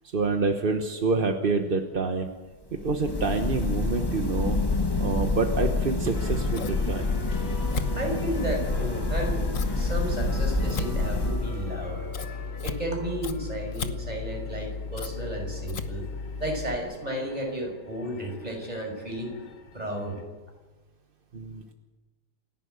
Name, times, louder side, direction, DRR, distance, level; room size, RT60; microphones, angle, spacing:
voice 1, 0.0-2.3 2.7-4.6 5.0-7.1 21.3-21.7, right 3 dB, 35° right, 5 dB, 1.0 m, -27 dB
sound 1, 2.7-11.9, left 2 dB, 15° left, 1.1 m, -28 dB
sound 2, 6.1-20.2, left 2 dB, 75° left, 3.6 m, -45 dB
Scissors, 6.1-16.8, left 5 dB, 45° left, 1.3 m, -35 dB
voice 2, 7.9-12.0 12.6-16.0 16.4-19.3 19.7-20.2, right 1 dB, 20° right, 1 dB, 5.7 m, -33 dB
28.0 x 11.5 x 8.2 m, 1.2 s
omnidirectional pair, 2.2 m